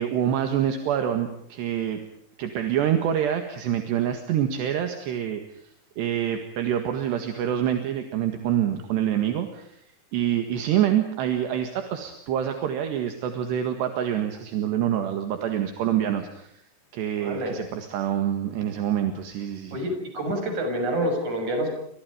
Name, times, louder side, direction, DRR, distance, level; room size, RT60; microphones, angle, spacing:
voice 1, 0.0-2.0 2.4-9.8 10.1-16.5 16.9-19.8, right 10 dB, 70° right, 6 dB, 3.9 m, -26 dB
voice 2, 17.2-17.5 19.7-21.7, right 1 dB, 40° right, 5 dB, 7.9 m, -27 dB
30.0 x 26.0 x 5.2 m, 0.69 s
omnidirectional pair, 5.2 m